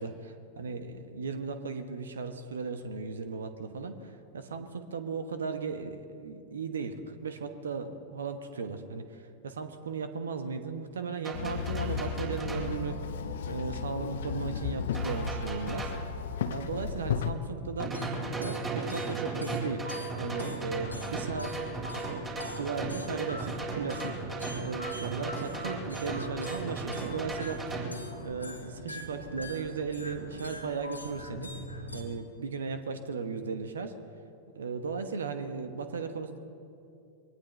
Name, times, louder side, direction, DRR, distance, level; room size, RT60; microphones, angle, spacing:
voice 1, 0.0-13.1 13.4-16.1 16.5-18.0 18.3-19.9 20.2-21.5 22.4-27.8 28.2-31.6 31.9-34.0 34.5-36.4, right 5 dB, 65° right, 9 dB, 1.1 m, -36 dB
sound 1, 11.2-12.7 14.9-16.1 17.8-27.9, right 3 dB, 20° right, 3.9 m, -36 dB
Walk footsteps / Chatter / Hiss, 11.3-17.3, left 6 dB, 60° left, 0.9 m, -34 dB
sound 2, 17.9-32.0, left 1 dB, 85° left, 1.7 m, -43 dB
23.5 x 18.5 x 3.3 m, 2.5 s
figure-of-eight pair, 90°, 0 cm